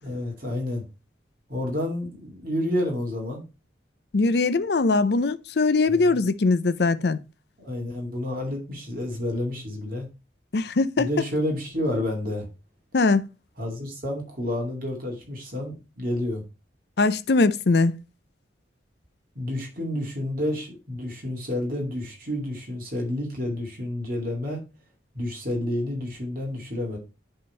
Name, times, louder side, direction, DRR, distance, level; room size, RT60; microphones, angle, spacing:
voice 1, 0.0-0.8 1.5-3.4 5.9-6.2 7.6-10.1 11.0-12.5 13.6-16.4 19.3-24.6 25.1-27.0, left 1 dB, 50° right, 2.5 m, -30 dB
voice 2, 4.1-7.2 10.5-11.1 12.9-13.3 17.0-17.9, left 3 dB, 60° left, 0.5 m, -21 dB
10.5 x 3.7 x 4.3 m
head